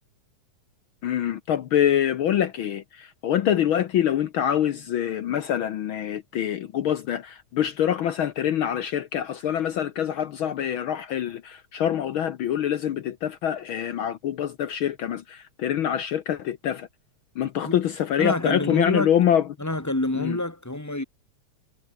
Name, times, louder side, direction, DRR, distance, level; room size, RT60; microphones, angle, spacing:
voice 1, 1.0-16.9 17.4-19.4 20.2-20.4, left 10 dB, 70° left, 1.2 m, -25 dB
voice 2, 18.2-19.1 19.6-21.0, left 1 dB, 10° left, 0.8 m, -27 dB
omnidirectional pair, 3.4 m